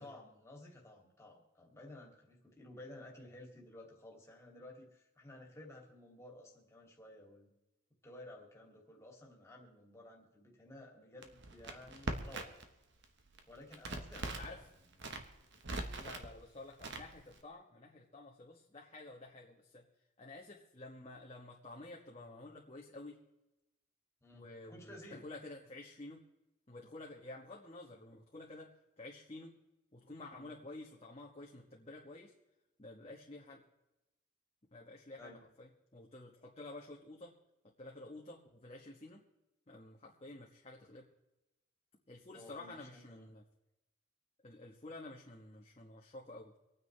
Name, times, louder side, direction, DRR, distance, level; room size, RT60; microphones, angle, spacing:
voice 1, 0.0-7.5 8.0-12.6 13.5-15.2 24.2-25.2 30.3-30.6 35.2-35.4 42.3-43.3, left 1 dB, 15° left, -1 dB, 2.6 m, -54 dB
Crackle, 11.2-12.7 13.0-14.6 14.9-16.3 16.8-17.4, right 2 dB, 60° right, 1.3 m, -41 dB
voice 2, 14.2-14.6 16.0-19.9 20.2-23.2 24.3-26.2 26.7-28.7 29.0-29.5 29.9-32.3 32.8-33.6 34.7-37.3 37.8-39.2 39.7-41.1 42.1-43.4 44.4-46.5, left 2 dB, 30° left, -1 dB, 1.3 m, -51 dB
26.0 x 9.6 x 3.3 m, 0.98 s
head